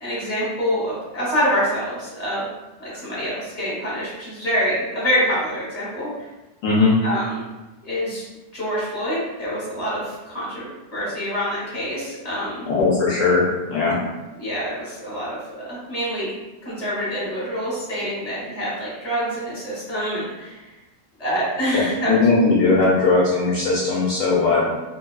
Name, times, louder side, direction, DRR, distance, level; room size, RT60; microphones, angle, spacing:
voice 1, 0.0-2.5 2.8-6.3 7.0-7.5 7.8-8.3 8.5-12.7 14.4-16.3 16.6-20.7 21.2-22.2, equal, 30° left, -8 dB, 1.0 m, -26 dB
voice 2, 6.6-6.9 12.7-14.0 21.7-21.8 22.1-24.7, left 3 dB, 65° left, -6 dB, 0.8 m, -18 dB
2.5 x 2.3 x 2.3 m, 1.1 s
omnidirectional pair, 1.6 m